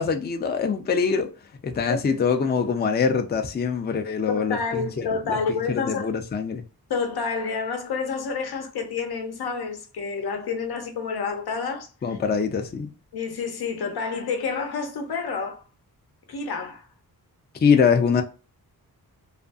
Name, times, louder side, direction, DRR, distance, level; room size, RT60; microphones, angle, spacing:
voice 1, 0.0-1.3 1.6-6.6 12.0-12.9 17.6-18.2, left 6 dB, 30° left, 0.4 m, -24 dB
voice 2, 4.3-6.1 6.9-12.2 13.1-15.6 16.3-16.9, left 5 dB, 85° left, 0.7 m, -29 dB
2.5 x 2.5 x 2.3 m
wide cardioid pair, 85°, 38 cm